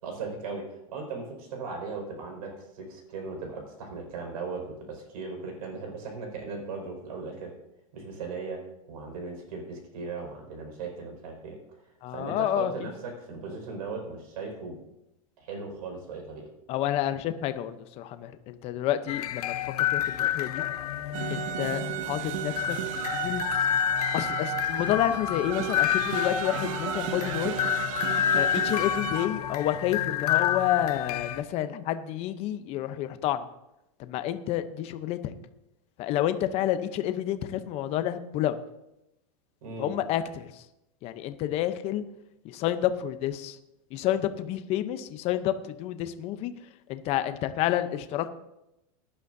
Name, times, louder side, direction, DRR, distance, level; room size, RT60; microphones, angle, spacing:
voice 1, 0.0-7.5 7.9-8.6 8.9-11.6 12.1-14.8 15.4-16.5 39.6-40.0, right 4 dB, 80° right, 2 dB, 5.2 m, -38 dB
voice 2, 12.0-12.7 16.7-20.6 21.3-22.8 23.1-23.4 24.1-27.5 28.4-33.5 34.0-35.3 36.0-38.6 39.8-40.6 41.0-42.0 42.4-43.6 43.9-46.5 46.9-48.3, left 12 dB, 35° left, 10 dB, 0.7 m, -29 dB
sound 1, 19.1-31.4, left 10 dB, 90° left, 0.8 m, -29 dB
sound 2, 21.1-29.3, right 10 dB, 60° right, 0.8 m, -34 dB
18.0 x 11.0 x 2.7 m, 0.89 s
supercardioid pair, 155°, 19 cm